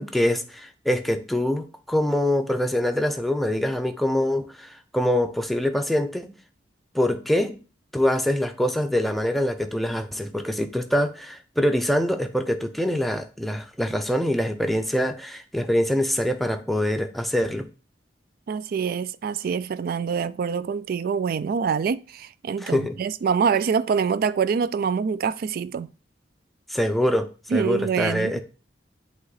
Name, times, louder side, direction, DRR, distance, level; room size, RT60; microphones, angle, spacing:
voice 1, 0.0-6.3 6.9-7.6 7.9-17.7 22.6-23.0 26.7-28.4, left 1 dB, ahead, 0.5 m, -24 dB
voice 2, 18.5-25.9 27.5-28.4, right 6 dB, 55° right, 0.3 m, -25 dB
8.1 x 3.0 x 4.0 m
head